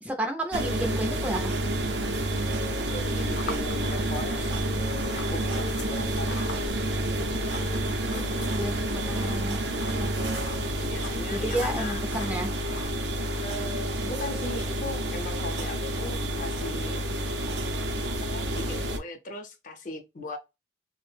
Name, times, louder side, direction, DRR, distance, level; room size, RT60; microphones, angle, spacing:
voice 1, 0.0-1.6 8.0-9.7 10.0-10.3 11.3-12.5, right 1 dB, 10° right, 0.4 m, -32 dB
sound 1, 0.5-19.0, right 1 dB, 85° right, 0.5 m, -29 dB
voice 2, 2.9-4.5 4.9-6.4 7.8-8.4 8.8-9.3 10.2-12.0 13.4-17.0 18.3-20.4, left 2 dB, 45° left, 0.5 m, -39 dB
sound 2, 3.1-12.9, left 3 dB, 90° left, 0.6 m, -43 dB
2.5 x 2.1 x 3.1 m
head